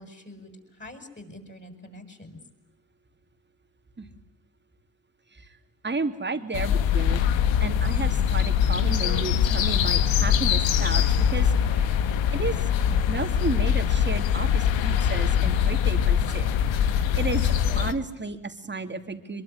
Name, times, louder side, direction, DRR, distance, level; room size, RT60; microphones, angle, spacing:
voice 1, 0.0-2.4, left 1 dB, 25° left, 6 dB, 7.3 m, -45 dB
voice 2, 5.8-7.2 7.6-11.0 11.3-11.9 12.3-16.5 16.8-16.9 17.2-19.4, right 3 dB, 25° right, 7 dB, 3.0 m, -32 dB
sound 1, 6.5-17.9, left 8 dB, 80° left, 1.7 m, -23 dB
23.5 x 23.0 x 9.8 m, 0.89 s
cardioid pair, 75°, 45 cm